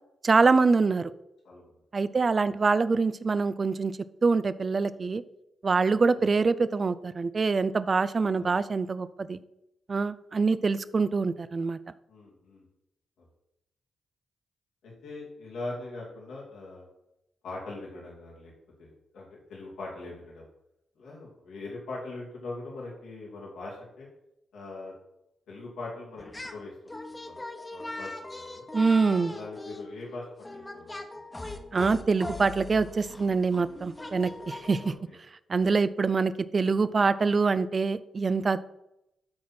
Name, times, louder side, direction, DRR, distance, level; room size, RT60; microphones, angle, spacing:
voice 1, 0.2-1.1 1.9-3.9 4.2-5.2 5.6-9.4 9.9-11.8 28.7-29.4 31.7-34.9 35.5-38.6, right 4 dB, 45° right, 15 dB, 0.5 m, -25 dB
voice 2, 12.1-12.6 14.8-16.9 17.4-18.5 18.8-20.5 21.0-24.1 24.5-24.9 25.5-26.3 26.5-27.4 27.7-28.6 29.3-31.0 34.8-35.1 35.6-35.8, left 2 dB, 85° left, -4 dB, 2.6 m, -41 dB
sound 1, 26.2-26.6 26.9-34.9, left 2 dB, 20° left, 1.2 m, -41 dB
12.5 x 4.2 x 4.4 m, 0.85 s
supercardioid pair, 55°, 0 cm